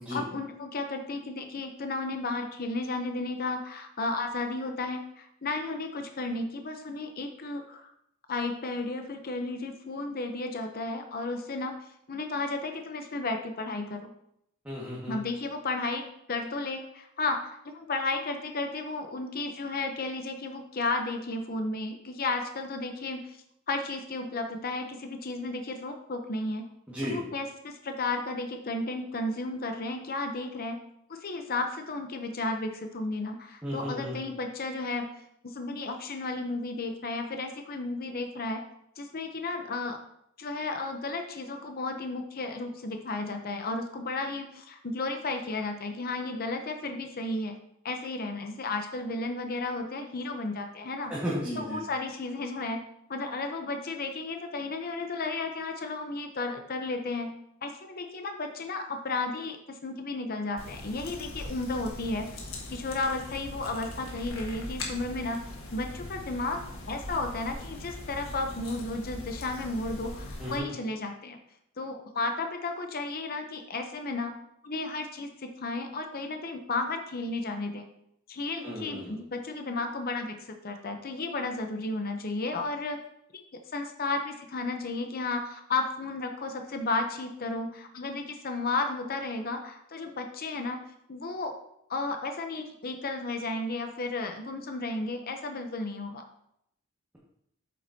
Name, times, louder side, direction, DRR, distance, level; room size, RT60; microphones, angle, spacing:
voice 1, 0.1-7.9 8.3-14.1 15.1-23.2 23.7-26.7 27.0-30.8 31.1-35.1 35.4-38.6 39.0-40.0 40.4-47.6 47.8-51.2 51.6-52.8 53.1-57.4 57.6-65.4 65.7-66.6 66.9-71.4 71.8-74.3 74.6-77.9 78.3-83.0 83.3-83.4 83.7-90.8 91.1-91.6 91.9-96.2, left 3 dB, 45° left, 5 dB, 0.7 m, -33 dB
voice 2, 14.7-15.2 26.9-27.2 33.6-34.2 51.1-51.8 70.4-70.7 78.6-79.2, equal, 5° right, -8 dB, 1.7 m, -34 dB
sound 1, 60.6-70.6, left 1 dB, 70° left, 1.5 m, -41 dB
8.6 x 7.3 x 2.8 m, 0.75 s
head